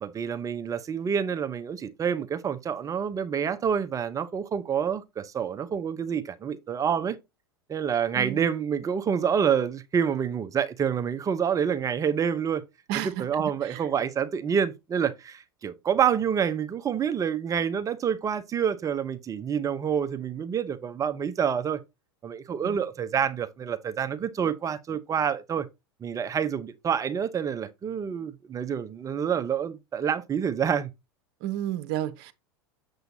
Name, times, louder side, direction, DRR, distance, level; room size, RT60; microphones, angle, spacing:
voice 1, 0.0-7.2 7.7-12.6 13.0-21.8 22.2-25.7 26.0-30.9, right 7 dB, 25° right, 0.8 m, -27 dB
voice 2, 8.1-8.5 12.9-13.9 22.6-22.8 31.4-32.3, right 12 dB, 55° right, 0.9 m, -32 dB
7.9 x 7.2 x 2.7 m
hypercardioid pair, 90°, 13 cm